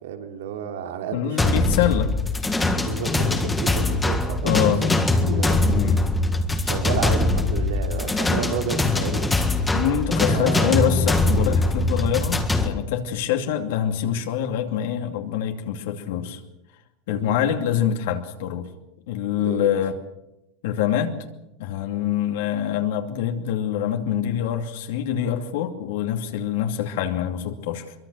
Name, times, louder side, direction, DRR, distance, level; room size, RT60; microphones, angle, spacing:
voice 1, 0.0-1.5 2.8-5.6 6.6-9.3 9.6-9.7 10.3-10.7 17.1-17.4 19.4-19.7, right 8 dB, 85° right, 5 dB, 3.3 m, -32 dB
voice 2, 1.1-2.1 4.4-4.9 5.7-6.1 6.6-6.7 9.7-16.4 17.1-18.7 19.1-20.0 20.6-21.2 21.6-27.9, left 9 dB, 60° left, 4 dB, 2.5 m, -25 dB
sound 1, 1.4-12.7, left 2 dB, 5° left, 1.7 m, -22 dB
24.5 x 23.5 x 6.5 m, 0.91 s
supercardioid pair, 175°, 0 cm